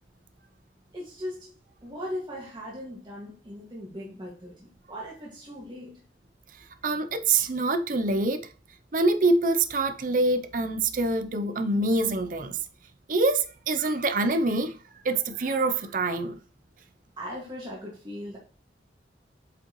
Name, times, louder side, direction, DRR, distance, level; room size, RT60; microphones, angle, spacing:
voice 1, 0.9-6.0 17.2-18.4, equal, 25° right, 1.9 m, -39 dB
voice 2, 6.8-8.5 8.9-12.6 13.1-14.7 15.0-16.4, right 2 dB, 50° right, 0.6 m, -25 dB
8.3 x 5.3 x 3.0 m
head